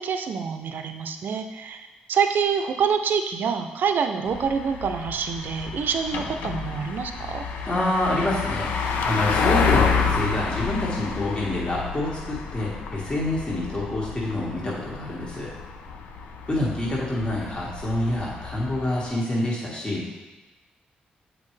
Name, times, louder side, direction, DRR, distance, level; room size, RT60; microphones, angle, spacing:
voice 1, 0.0-1.8 2.1-7.4, right 6 dB, 65° right, 7 dB, 0.5 m, -26 dB
sound 1, 4.3-19.1, left 5 dB, 80° left, 0.5 m, -29 dB
voice 2, 7.7-8.7 9.0-15.5 16.5-20.0, left 1 dB, 30° left, -5 dB, 1.8 m, -27 dB
7.4 x 4.7 x 3.3 m, 1.1 s
supercardioid pair, 55°, 3 cm